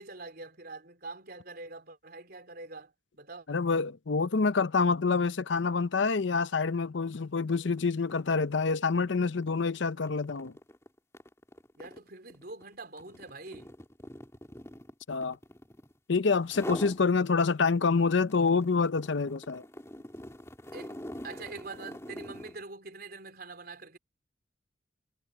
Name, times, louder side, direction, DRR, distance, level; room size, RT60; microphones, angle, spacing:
voice 1, 0.0-3.6 11.8-13.7 20.7-24.0, right 3 dB, 50° right, 4.4 m, -45 dB
voice 2, 3.5-10.5 15.1-15.4 16.1-19.6, left 4 dB, 70° left, 0.6 m, -27 dB
sound 1, 7.0-7.2 7.5-16.0 16.4-17.0 17.5-22.6, left 1 dB, 15° left, 2.9 m, -45 dB
head